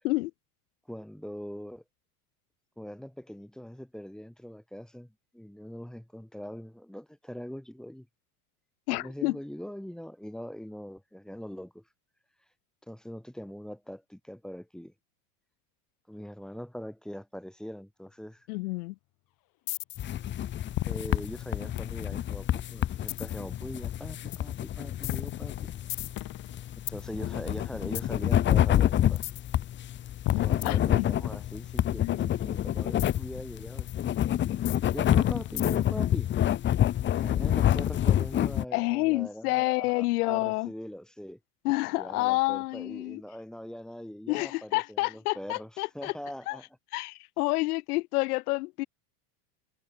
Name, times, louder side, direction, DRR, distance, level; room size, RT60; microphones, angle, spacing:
voice 1, 0.9-1.8 2.8-8.1 8.9-11.8 12.9-14.9 16.1-18.5 20.9-25.7 26.9-29.2 30.4-34.2 34.9-36.3 37.1-41.4 42.0-46.6, equal, ahead, 5.6 m, -42 dB
voice 2, 8.9-9.4 18.5-18.9 30.3-31.1 32.0-32.3 38.7-40.7 41.6-43.2 44.3-46.1 46.5-46.6 46.9-48.9, left 22 dB, 75° left, 1.7 m, -29 dB
sound 1, 19.7-20.2 20.7-22.3 23.1-23.5 24.3-24.5 25.0-27.0 27.9-28.2 29.2-29.5 30.3-31.4 33.0-33.2 33.9-34.0 34.6-36.0, left 19 dB, 45° left, 4.3 m, -35 dB
sound 2, 20.0-38.6, left 11 dB, 25° left, 0.9 m, -28 dB
supercardioid pair, 140°, 46 cm